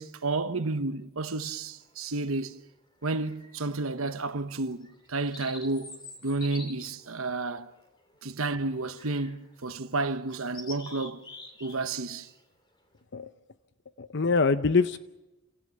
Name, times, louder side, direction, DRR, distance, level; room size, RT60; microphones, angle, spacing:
voice 1, 0.0-2.5 3.0-7.7 8.2-11.2 11.6-12.3, right 3 dB, 70° right, 1.2 m, -31 dB
sound 1, 1.4-1.9 3.0-3.7 4.1-4.3 4.8-8.3 9.0-9.4 9.8-9.9 10.3-11.8 12.1-12.4, left 2 dB, 20° left, 3.1 m, -47 dB
voice 2, 14.0-15.0, left 4 dB, 55° left, 0.7 m, -24 dB
29.0 x 17.5 x 7.2 m
head